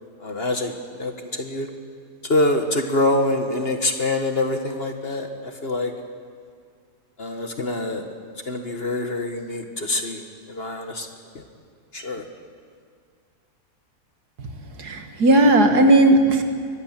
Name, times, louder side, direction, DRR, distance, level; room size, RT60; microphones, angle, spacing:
voice 1, 0.2-1.7 2.2-5.9 7.2-8.1 8.4-11.1 11.3-11.4 11.9-12.3, left 2 dB, 40° left, 5 dB, 1.5 m, -25 dB
voice 2, 14.8-16.4, right 1 dB, 65° right, 6 dB, 2.2 m, -16 dB
24.0 x 19.0 x 7.4 m, 2.1 s
omnidirectional pair, 1.8 m